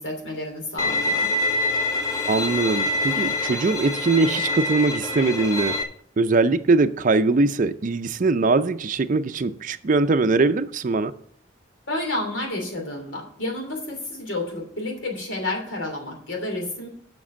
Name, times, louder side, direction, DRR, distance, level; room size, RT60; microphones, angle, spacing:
voice 1, 0.0-1.3 11.9-16.9, left 2 dB, 90° left, 3.0 m, -30 dB
Bowed string instrument, 0.8-5.8, left 2 dB, 20° left, 0.9 m, -25 dB
voice 2, 2.3-5.8 6.2-11.1, right 3 dB, 45° right, 0.5 m, -21 dB
7.5 x 6.0 x 7.2 m
head